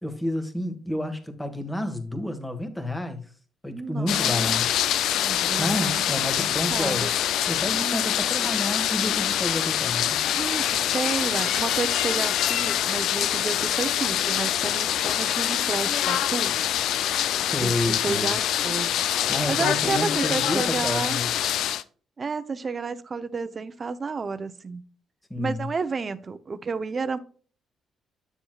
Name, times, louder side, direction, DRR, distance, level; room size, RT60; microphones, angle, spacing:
voice 1, 0.0-3.2 3.6-4.7 5.4-7.0 7.5-10.2 17.4-18.4 19.3-21.3 25.3-25.7, left 1 dB, 10° left, 1.7 m, -30 dB
voice 2, 3.7-4.6 5.2-6.0 6.3-7.1 7.7-8.1 10.3-10.7 10.9-16.5 17.6-18.9 19.5-21.2 22.2-24.8 25.4-27.2, right 4 dB, 35° right, 0.8 m, -31 dB
sound 1, 4.1-21.8, left 11 dB, 80° left, 0.5 m, -25 dB
9.5 x 6.9 x 2.4 m
cardioid pair, 90°, 0 cm